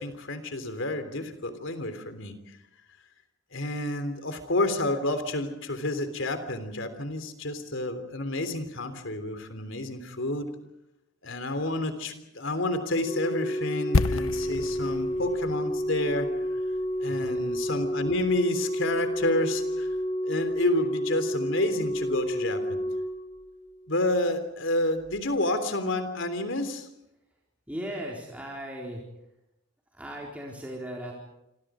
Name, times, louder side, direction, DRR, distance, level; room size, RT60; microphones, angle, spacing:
voice 1, 0.0-2.3 3.5-10.5 11.2-16.3 17.0-19.9 20.2-22.8 23.9-26.9, left 1 dB, 65° left, 10 dB, 3.4 m, -29 dB
Organ, 13.0-23.9 25.0-25.2, equal, 35° left, 4.2 m, -30 dB
sound 1, 13.9-17.9 18.1-18.3, left 3 dB, 85° left, 0.8 m, -31 dB
voice 2, 17.1-17.4 27.7-29.0 29.9-31.1, equal, 5° right, -3 dB, 4.2 m, -37 dB
27.0 x 26.5 x 5.0 m, 0.86 s
head